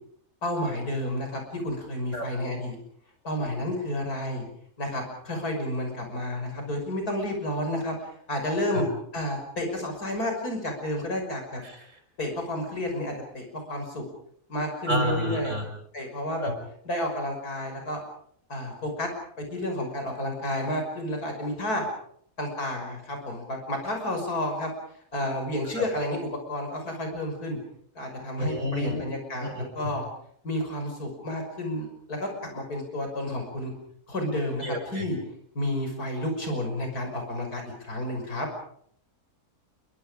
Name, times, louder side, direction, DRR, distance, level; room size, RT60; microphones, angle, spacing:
voice 1, 0.4-2.8 3.2-4.5 4.8-8.9 9.1-11.6 12.2-14.0 14.5-15.6 15.9-16.5 16.8-18.0 18.5-19.1 19.4-21.9 22.4-24.7 25.1-27.6 27.9-30.0 30.4-33.7 34.1-35.2 35.5-38.5, left 1 dB, 75° left, 3 dB, 6.5 m, -31 dB
voice 2, 14.9-15.6 16.4-16.5 25.8-25.9 28.4-29.0 29.4-29.9 34.6-35.1, left 1 dB, 50° right, 4 dB, 6.0 m, -29 dB
27.5 x 23.5 x 5.1 m, 0.65 s
omnidirectional pair, 1.6 m